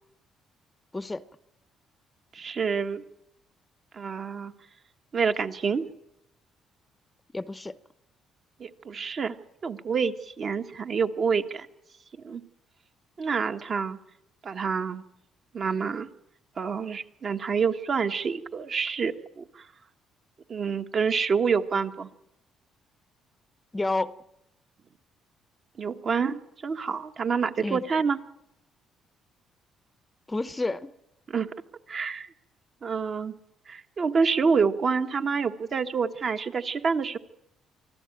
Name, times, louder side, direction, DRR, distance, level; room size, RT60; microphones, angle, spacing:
voice 1, 0.9-1.2 7.3-7.8 23.7-24.2 27.6-27.8 30.3-30.9, left 2 dB, 15° left, 0.7 m, -30 dB
voice 2, 2.3-3.0 3.9-4.5 5.1-5.9 8.6-9.3 9.6-11.7 12.2-12.4 13.2-14.0 14.4-15.0 15.5-16.1 16.6-19.6 20.5-22.1 25.8-28.2 31.3-31.5 31.9-32.3 32.8-33.4 33.7-37.2, right 5 dB, 45° right, 1.2 m, -27 dB
24.5 x 14.0 x 9.0 m
cardioid pair, 100°, 0 cm